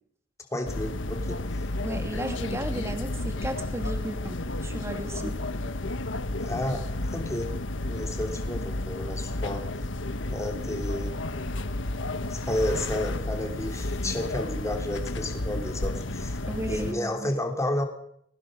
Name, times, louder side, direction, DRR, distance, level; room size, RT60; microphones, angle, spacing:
voice 1, 0.5-1.4 6.4-7.5 7.8-9.7 10.3-11.1 12.3-16.4 16.7-17.8, left 1 dB, 15° left, 4 dB, 3.2 m, -31 dB
Edit Suite Atmos, 0.7-16.9, left 2 dB, 85° left, 1.3 m, -32 dB
voice 2, 1.8-4.4 4.6-5.3 16.5-17.3, right 1 dB, 15° right, 5 dB, 2.9 m, -34 dB
21.0 x 19.0 x 6.6 m, 0.72 s
head